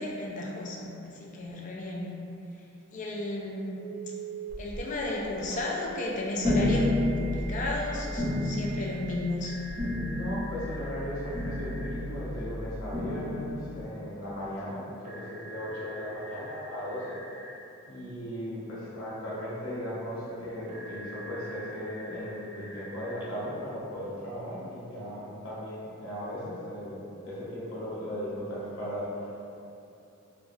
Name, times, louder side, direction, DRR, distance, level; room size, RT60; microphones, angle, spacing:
voice 1, 0.0-2.1 2.9-3.9 4.6-9.6, left 2 dB, 35° left, -2 dB, 0.3 m, -33 dB
Telephone, 3.8-4.6 6.4-11.9 15.0-17.6 20.7-23.2, right 3 dB, 35° right, 0.3 m, -45 dB
sound 1, 4.5-5.1 5.5-5.7 6.4-13.8, left 1 dB, 10° left, 0.7 m, -31 dB
voice 2, 10.0-17.2 17.9-29.3, equal, 80° left, -8 dB, 0.7 m, -37 dB
2.9 x 2.3 x 2.6 m, 2.7 s
head